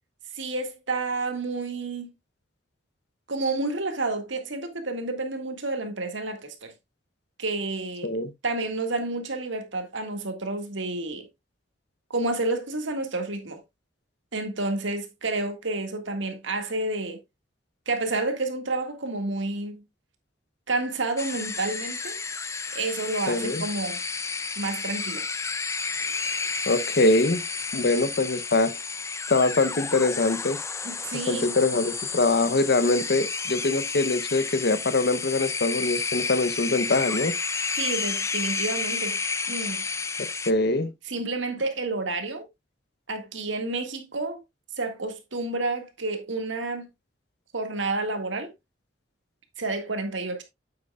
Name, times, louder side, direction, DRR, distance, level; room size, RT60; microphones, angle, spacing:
voice 1, 0.3-2.1 3.3-6.7 7.4-8.1 8.4-11.3 12.1-13.6 14.3-17.2 17.9-19.8 20.7-22.2 22.7-24.0 24.6-25.2 30.8-31.5 37.7-39.2 39.5-39.8 41.1-42.4 43.1-44.4 44.8-46.9 47.5-48.5 49.6-50.4, right 2 dB, 75° right, 1.9 m, -30 dB
sound 1, 21.2-40.5, left 4 dB, 15° left, 0.4 m, -31 dB
voice 2, 23.3-23.6 26.7-27.4 27.7-28.7 29.3-30.6 31.3-37.3 40.5-40.9, left 2 dB, 55° left, 0.8 m, -23 dB
8.6 x 8.2 x 2.3 m
head